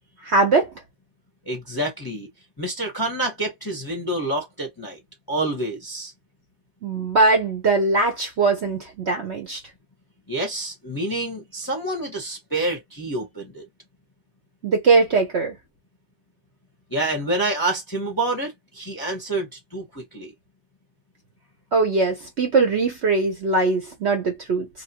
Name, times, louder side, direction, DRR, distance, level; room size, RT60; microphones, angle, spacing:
voice 1, 0.2-0.7 6.8-9.6 14.6-15.6 21.7-24.7, right 3 dB, 55° right, 0.8 m, -21 dB
voice 2, 1.5-2.3 2.6-5.0 5.3-6.1 10.3-13.7 16.9-20.3, right 2 dB, 20° left, 0.7 m, -27 dB
2.9 x 2.3 x 2.7 m
omnidirectional pair, 1.7 m